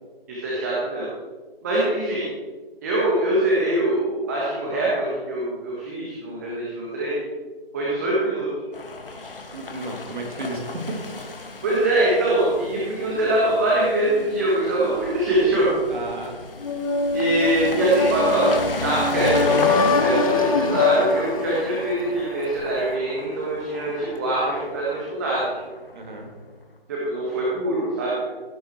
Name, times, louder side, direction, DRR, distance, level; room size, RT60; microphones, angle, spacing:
voice 1, 0.3-1.1 1.6-2.2 2.8-7.2 7.7-8.5 11.6-15.7 17.1-25.6 26.9-28.2, right 1 dB, 15° right, -6 dB, 1.6 m, -23 dB
sound 1, 8.7-26.4, left 2 dB, 65° left, 2.0 m, -35 dB
voice 2, 9.5-11.0 15.9-16.4 25.9-26.3, right 1 dB, 50° right, 1 dB, 2.8 m, -33 dB
sound 2, 16.6-22.4, left 4 dB, 35° left, 0.9 m, -23 dB
17.0 x 6.6 x 4.6 m, 1.4 s
figure-of-eight pair, 165°, 30 cm